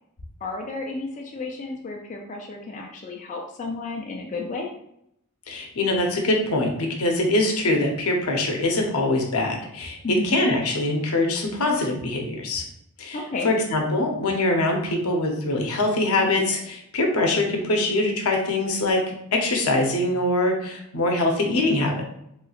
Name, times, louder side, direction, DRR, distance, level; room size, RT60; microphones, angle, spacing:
voice 1, 0.4-4.7 10.0-10.4 13.1-13.5, left 3 dB, 35° left, 0 dB, 0.4 m, -32 dB
voice 2, 5.5-10.0 10.2-12.6 13.0-13.2 13.4-22.0, left 2 dB, 80° left, 2 dB, 0.7 m, -23 dB
3.1 x 3.1 x 2.3 m, 0.75 s
head